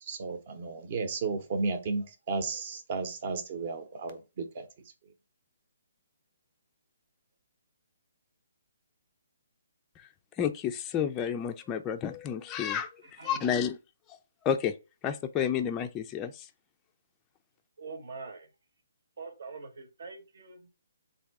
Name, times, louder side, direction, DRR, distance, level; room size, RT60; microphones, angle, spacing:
voice 1, 0.0-4.7, right 4 dB, 40° right, 0.8 m, -33 dB
voice 2, 10.4-12.9 13.2-13.8 14.4-14.7 15.0-16.3, left 8 dB, 15° left, 0.3 m, -30 dB
voice 3, 13.0-13.5 17.8-18.5 19.2-20.7, right 4 dB, 65° right, 1.1 m, -44 dB
3.6 x 2.6 x 4.6 m
hypercardioid pair, 160°, 0 cm